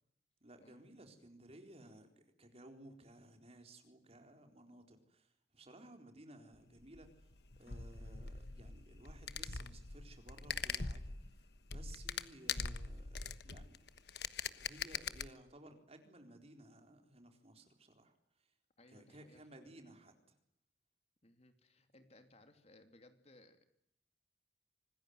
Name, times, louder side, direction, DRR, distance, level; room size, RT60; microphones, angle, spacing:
voice 1, 0.4-13.8 14.4-18.1 18.4-18.5 18.9-20.1, right 1 dB, 35° right, 5 dB, 4.1 m, -58 dB
sound 1, 6.7-15.3, left 6 dB, 65° left, 1.3 m, -43 dB
voice 2, 18.8-19.7 21.2-23.6, left 2 dB, 35° left, 8 dB, 2.9 m, -64 dB
26.0 x 20.0 x 9.6 m, 0.75 s
head